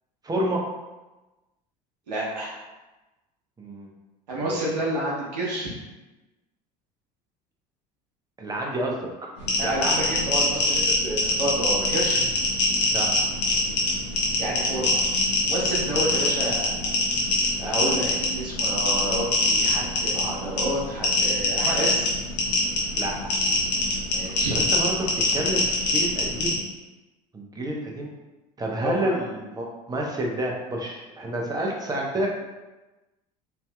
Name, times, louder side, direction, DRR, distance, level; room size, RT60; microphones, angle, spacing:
voice 1, 0.2-0.6 3.6-3.9 4.3-4.6 8.4-9.0 9.6-9.7 12.9-13.1 23.0-23.3 24.5-25.1 25.3-26.6 27.3-28.1 28.6-32.3, right 1 dB, 20° right, -1 dB, 0.8 m, -29 dB
voice 2, 2.1-2.5 4.3-5.7 9.6-12.2 14.4-15.0 15.4-16.9 17.6-22.1 24.1-24.6 28.8-29.2, right 1 dB, 85° right, -5 dB, 0.9 m, -29 dB
sound 1, 9.4-26.5, left 2 dB, 80° left, 1.0 m, -24 dB
3.4 x 2.7 x 2.2 m, 1.1 s
hypercardioid pair, 70°, 21 cm